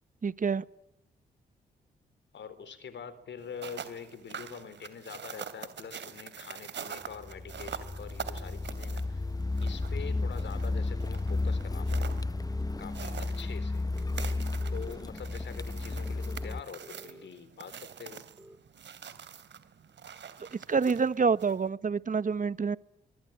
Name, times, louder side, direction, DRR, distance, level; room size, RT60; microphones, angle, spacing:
voice 1, 0.2-0.6 20.5-22.8, right 5 dB, 40° right, 16 dB, 1.3 m, -27 dB
voice 2, 2.3-9.2 9.6-12.2 12.8-13.9 14.7-18.2, left 7 dB, 65° left, 14 dB, 4.1 m, -45 dB
sound 1, 3.4-21.7, right 8 dB, 65° right, 3.1 m, -45 dB
Car, 7.1-16.6, left 2 dB, 20° left, 0.9 m, -33 dB
sound 2, 11.7-12.8 13.9-15.1 16.2-17.3 18.4-18.6, right 1 dB, 10° right, 2.1 m, -52 dB
25.5 x 23.5 x 8.8 m, 0.83 s
hypercardioid pair, 45°, 20 cm